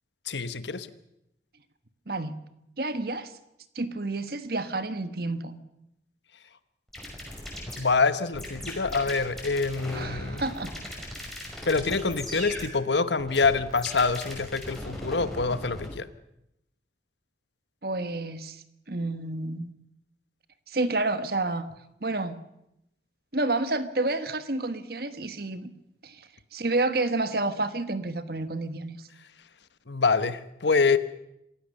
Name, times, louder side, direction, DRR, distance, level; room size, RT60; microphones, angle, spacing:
voice 1, 0.3-0.9 7.8-10.4 11.7-16.1 29.9-31.0, left 4 dB, 80° left, 13 dB, 1.1 m, -25 dB
voice 2, 2.1-2.4 2.8-3.3 3.7-5.6 9.9-10.7 17.8-19.7 20.7-21.7 22.0-22.4 23.3-25.7 26.0-29.1, right 2 dB, 55° right, 11 dB, 1.4 m, -30 dB
sound 1, 6.9-15.9, equal, ahead, 5.7 m, -39 dB
26.5 x 16.0 x 6.7 m, 0.82 s
head